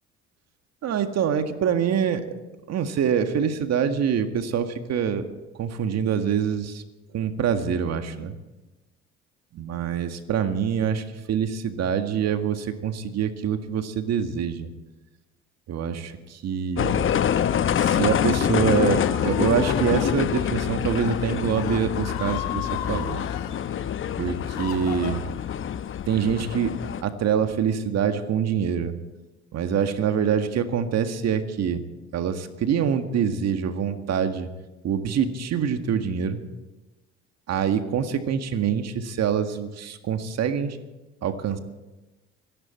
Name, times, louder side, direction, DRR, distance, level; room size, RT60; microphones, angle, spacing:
voice 1, 0.8-2.3 2.7-5.3 5.6-6.8 7.1-8.3 9.5-14.7 15.7-17.1 17.8-23.2 24.2-25.2 26.1-26.7 27.0-28.9 29.5-31.8 32.1-34.5 34.8-36.4 37.5-40.8 41.2-41.6, right 7 dB, 55° right, 7 dB, 1.9 m, -25 dB
sound 1, 16.8-27.0, left 9 dB, 40° left, 0.9 m, -26 dB
Screaming, 17.7-20.1 20.8-21.2 21.5-23.6 24.1-25.5, left 10 dB, 80° left, 1.9 m, -36 dB
25.5 x 11.0 x 4.4 m, 1.1 s
hypercardioid pair, 65°, 31 cm